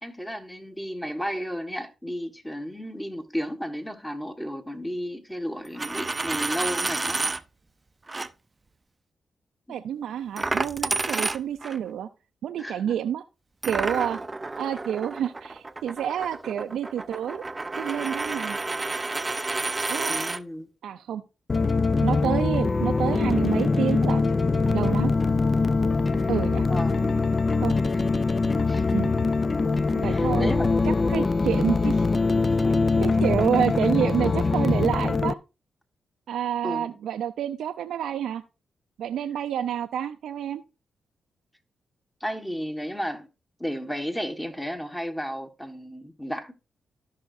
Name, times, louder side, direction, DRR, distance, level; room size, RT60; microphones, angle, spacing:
voice 1, 0.0-7.3 9.7-9.8 12.6-13.0 20.1-20.7 26.7-27.3 28.7-29.0 30.0-30.7 36.6-36.9 42.2-43.3 43.6-46.5, equal, 10° left, 1.4 m, -33 dB
Coin (dropping), 5.7-7.4 8.1-8.3 10.4-11.8 13.6-20.4, right 3 dB, 30° right, 0.5 m, -30 dB
voice 2, 9.7-12.1 12.4-13.2 13.6-14.2 14.6-17.4 17.7-18.6 19.9-20.2 20.8-21.2 22.0-24.3 24.7-25.1 26.3-26.7 27.6-27.7 28.9-29.1 29.9-30.5 31.1-32.0 33.0-35.4 36.3-38.4 39.0-40.6, right 9 dB, 85° right, 0.4 m, -28 dB
sound 1, 21.5-35.3, left 3 dB, 35° left, 0.4 m, -23 dB
13.0 x 5.7 x 2.6 m
cardioid pair, 60°, 0 cm